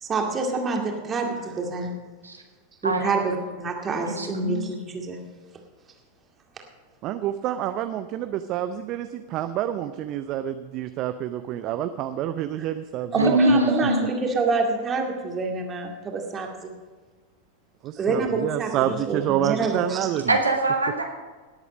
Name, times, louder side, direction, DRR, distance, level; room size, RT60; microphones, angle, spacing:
voice 1, 0.0-1.9 2.8-5.2 13.1-16.7 18.0-20.1, right 3 dB, 20° right, 2 dB, 2.1 m, -27 dB
voice 2, 2.8-3.3 4.1-4.9 13.1-14.1 20.3-21.0, right 1 dB, 80° right, 2 dB, 1.8 m, -23 dB
voice 3, 7.0-13.6 17.8-20.3, right 11 dB, 40° right, 10 dB, 0.5 m, -28 dB
18.0 x 8.2 x 5.2 m, 1.4 s
figure-of-eight pair, 90°, 0 cm